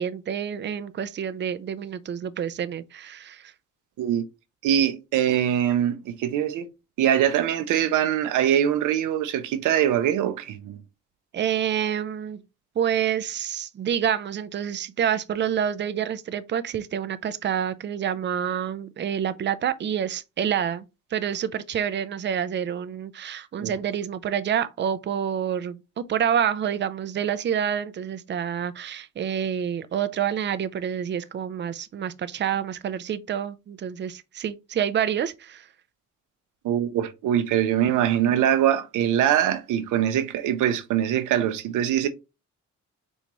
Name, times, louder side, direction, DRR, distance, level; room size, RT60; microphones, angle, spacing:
voice 1, 0.0-3.5 11.3-12.4 12.8-20.8 21.1-35.7, right 9 dB, 40° right, 0.5 m, -28 dB
voice 2, 4.6-6.7 7.0-10.8 23.6-23.7 36.6-42.1, right 10 dB, 85° right, 0.7 m, -23 dB
4.5 x 2.7 x 3.0 m
cardioid pair, 90°, 30 cm